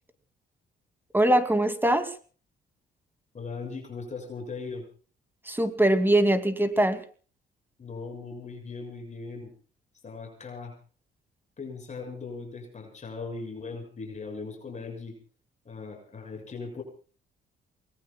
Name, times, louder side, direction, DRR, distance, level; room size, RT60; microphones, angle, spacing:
voice 1, 1.1-2.1 5.5-7.0, right 1 dB, 10° right, 9 dB, 2.6 m, -22 dB
voice 2, 3.3-4.8 7.8-9.5 10.0-10.7 11.6-15.2 15.7-16.8, left 4 dB, 35° left, 1 dB, 7.0 m, -39 dB
29.0 x 20.5 x 2.4 m, 0.40 s
cardioid pair, 90°, 20 cm